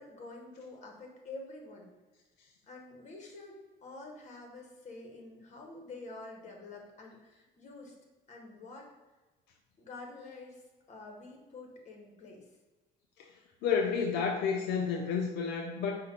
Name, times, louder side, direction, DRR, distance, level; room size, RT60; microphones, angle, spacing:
voice 1, 0.0-1.9 2.7-7.9 8.3-8.9 9.8-12.5, left 2 dB, 45° left, 1 dB, 1.1 m, -48 dB
voice 2, 13.6-16.0, left 6 dB, 80° left, 1 dB, 0.5 m, -30 dB
4.9 x 2.2 x 4.1 m, 1.2 s
cardioid pair, 110°, 17 cm